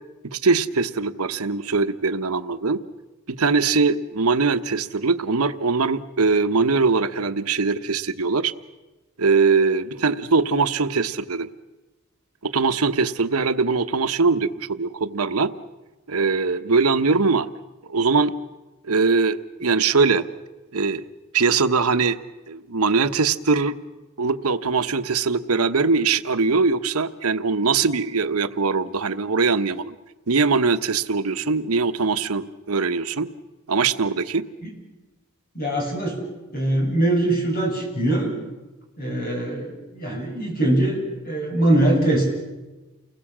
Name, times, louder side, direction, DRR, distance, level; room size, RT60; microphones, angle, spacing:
voice 1, 0.2-2.8 3.3-8.5 9.2-11.5 12.4-15.5 16.1-17.5 17.8-18.3 18.8-20.2 20.7-21.0 21.3-22.2 22.5-23.8 24.2-29.9 30.3-33.3 33.7-34.4, right 4 dB, 90° right, 10 dB, 1.1 m, -21 dB
voice 2, 35.5-36.2 36.5-38.3 39.0-42.3, right 1 dB, 40° left, 1 dB, 7.5 m, -22 dB
29.5 x 21.0 x 7.4 m, 1.1 s
head